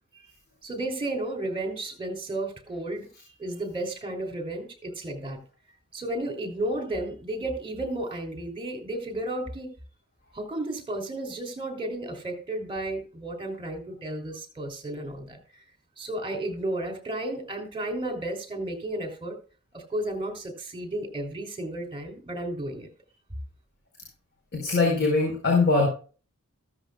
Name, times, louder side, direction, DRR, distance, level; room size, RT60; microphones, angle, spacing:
voice 1, 0.6-3.1 3.4-5.4 5.9-9.7 10.3-15.6 16.0-19.4 19.7-22.9, right 1 dB, 25° right, 4 dB, 3.3 m, -33 dB
voice 2, 24.5-25.9, left 3 dB, 50° left, -1 dB, 4.6 m, -22 dB
15.0 x 13.5 x 2.4 m, 0.38 s
head